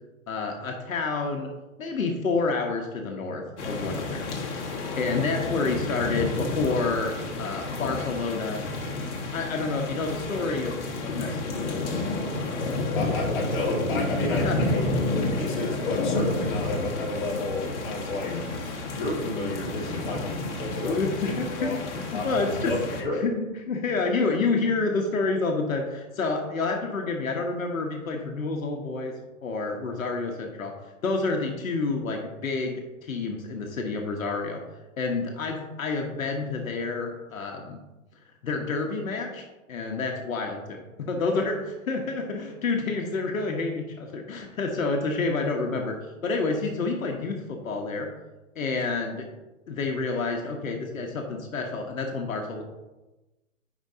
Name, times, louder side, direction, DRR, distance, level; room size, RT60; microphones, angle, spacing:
voice 1, 0.3-1.5 1.8-8.6 9.3-11.5 14.3-14.7 18.3-18.5 19.8-20.0 20.8-29.1 29.4-30.7 31.0-34.6 35.0-37.8 38.4-48.1 48.5-49.3 49.7-52.6, left 3 dB, 75° left, 1 dB, 1.3 m, -29 dB
sound 1, 3.6-23.0, left 2 dB, 55° left, 1.6 m, -30 dB
voice 2, 12.9-14.8 15.1-18.3 18.9-21.7 22.1-23.2, left 2 dB, 35° left, -4 dB, 2.1 m, -31 dB
10.5 x 5.3 x 2.8 m, 1.1 s
hypercardioid pair, 170°, 41 cm